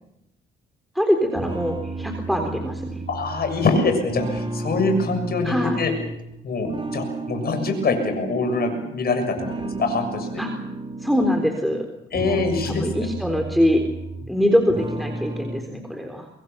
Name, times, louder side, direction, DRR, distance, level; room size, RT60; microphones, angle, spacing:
voice 1, 0.9-3.0 5.4-5.8 10.4-10.5 11.0-11.9 12.2-13.8 14.3-16.3, equal, ahead, 3 dB, 3.7 m, -23 dB
sound 1, 1.4-6.3 6.6-8.9 9.4-11.5 12.0-14.4 14.7-15.6, right 2 dB, 25° right, 3.1 m, -32 dB
voice 2, 3.1-5.9 6.4-10.4 12.1-13.1, left 3 dB, 50° left, 6 dB, 6.8 m, -24 dB
25.0 x 22.5 x 7.0 m, 0.88 s
cardioid pair, 90°, 20 cm